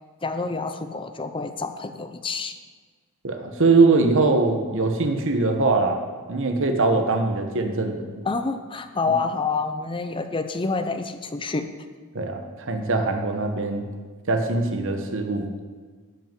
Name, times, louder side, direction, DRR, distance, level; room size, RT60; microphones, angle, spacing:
voice 1, 0.2-2.5 8.2-11.7, left 4 dB, 25° left, 8 dB, 0.6 m, -28 dB
voice 2, 3.2-6.0 6.3-8.2 12.1-13.9 14.3-15.5, right 3 dB, 60° right, 4 dB, 1.2 m, -22 dB
12.5 x 5.7 x 9.2 m, 1.5 s
head